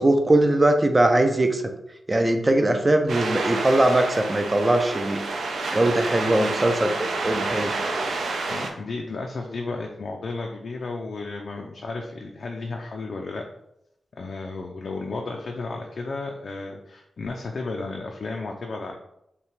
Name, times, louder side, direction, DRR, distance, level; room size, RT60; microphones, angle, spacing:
voice 1, 0.0-1.6 2.1-5.2 5.7-7.7, right 1 dB, 20° right, 5 dB, 0.4 m, -21 dB
sound 1, 3.1-8.7, right 3 dB, 75° right, 0.6 m, -29 dB
voice 2, 8.5-13.5 14.1-19.0, left 3 dB, 45° left, 1 dB, 0.4 m, -33 dB
5.6 x 2.2 x 3.1 m, 0.81 s
wide cardioid pair, 170°, 0 cm